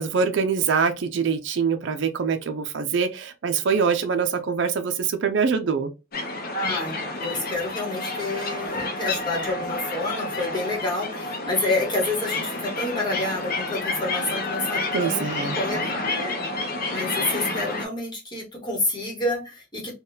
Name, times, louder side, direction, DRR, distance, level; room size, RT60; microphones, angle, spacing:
voice 1, 0.0-5.9 14.9-15.6, right 5 dB, 60° right, 0.4 m, -24 dB
sound 1, 6.1-17.9, left 2 dB, 45° left, 0.7 m, -30 dB
voice 2, 6.5-15.2 15.5-16.4 16.9-19.9, left 2 dB, 20° left, 1.1 m, -28 dB
3.5 x 2.2 x 2.7 m
head